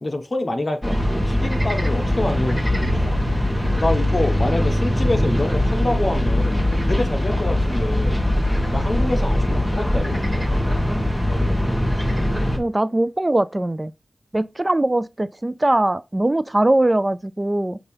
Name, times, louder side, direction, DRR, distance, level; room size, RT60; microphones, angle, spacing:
voice 1, 0.0-3.0 3.6-8.2 8.7-10.5, left 1 dB, 40° left, 1.2 m, -26 dB
sound 1, 0.8-12.6, left 1 dB, 5° left, 1.7 m, -21 dB
voice 2, 12.6-13.9 14.3-17.8, right 1 dB, 25° right, 0.3 m, -21 dB
6.6 x 2.9 x 5.5 m
wide cardioid pair, 95°, 0 cm